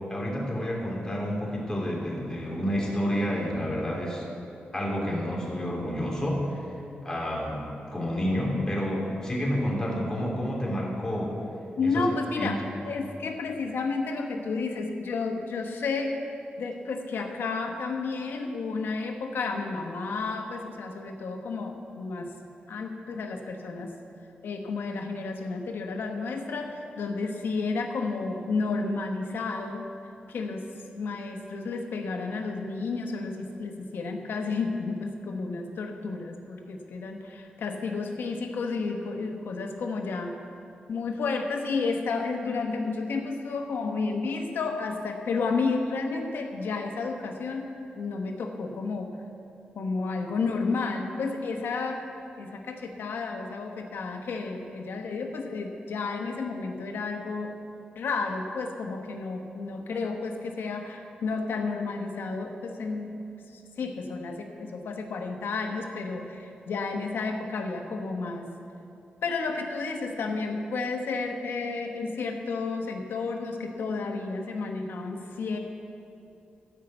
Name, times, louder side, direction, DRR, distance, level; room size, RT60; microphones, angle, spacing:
voice 1, 0.1-4.2 4.7-6.7 7.0-7.7 7.9-11.3 11.9-12.0 12.4-12.5, equal, 20° left, -3 dB, 3.1 m, -29 dB
voice 2, 11.8-16.2 16.6-22.3 22.7-23.9 24.4-29.9 30.3-30.7 30.9-40.4 40.9-49.2 49.7-52.1 52.4-57.6 57.9-68.5 69.2-75.6, left 4 dB, 85° left, 3 dB, 1.1 m, -31 dB
13.5 x 5.5 x 7.9 m, 2.6 s
cardioid pair, 85°, 4 cm